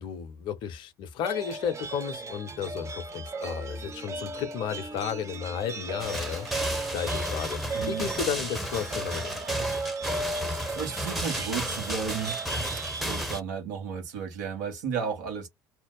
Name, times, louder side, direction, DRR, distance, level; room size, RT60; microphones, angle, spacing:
voice 1, 0.0-7.6 7.9-9.4, left 8 dB, 50° left, 0.8 m, -33 dB
sound 1, 1.2-13.4, right 3 dB, 30° right, 0.6 m, -36 dB
sound 2, 6.0-13.4, equal, ahead, 0.9 m, -33 dB
voice 2, 7.7-8.1 10.7-12.4 13.0-15.5, right 6 dB, 70° right, 1.2 m, -33 dB
2.7 x 2.0 x 3.7 m
figure-of-eight pair, 60°, 11 cm